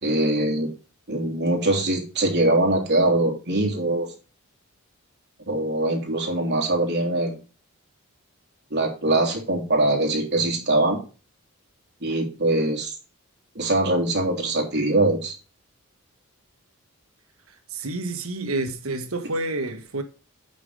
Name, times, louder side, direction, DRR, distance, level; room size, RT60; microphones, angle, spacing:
voice 1, 0.0-0.7 1.1-4.1 5.5-7.4 8.7-11.0 12.0-12.9 13.5-15.3, right 2 dB, 55° right, 3.2 m, -22 dB
voice 2, 17.7-20.0, right 2 dB, 85° right, 1.6 m, -29 dB
9.1 x 6.2 x 4.9 m
head